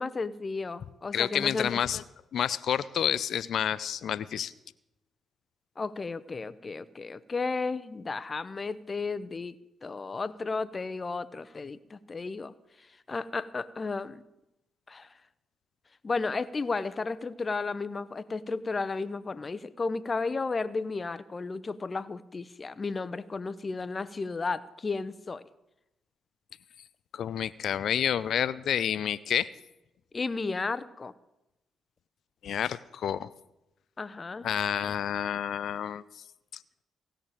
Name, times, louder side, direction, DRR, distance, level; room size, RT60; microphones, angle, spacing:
voice 1, 0.0-1.8 5.8-9.5 9.8-12.5 13.1-14.2 14.9-15.1 16.0-25.4 30.1-31.1 34.0-34.5, left 4 dB, 40° left, 16 dB, 0.8 m, -33 dB
voice 2, 1.1-2.0 2.3-4.5 27.1-29.5 32.4-33.3 34.4-36.0, left 9 dB, 70° left, 17 dB, 0.4 m, -29 dB
16.5 x 6.7 x 8.9 m, 0.93 s
hypercardioid pair, 45°, 0 cm